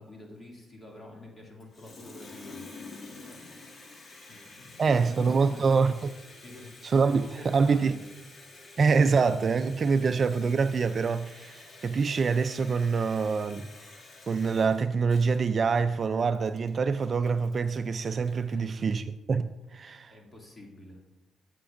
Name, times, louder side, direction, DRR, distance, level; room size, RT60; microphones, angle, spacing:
voice 1, 0.0-3.9 4.3-5.9 6.4-8.1 18.5-18.7 20.1-21.0, left 1 dB, 25° left, 2.3 m, -48 dB
Water tap faucet, 1.6-18.5, left 3 dB, 45° left, 1.8 m, -49 dB
voice 2, 4.8-6.1 6.8-8.0 8.8-13.7 14.3-20.1, right 5 dB, 45° right, 0.3 m, -25 dB
14.0 x 7.7 x 2.5 m
cardioid pair, 90°, 0 cm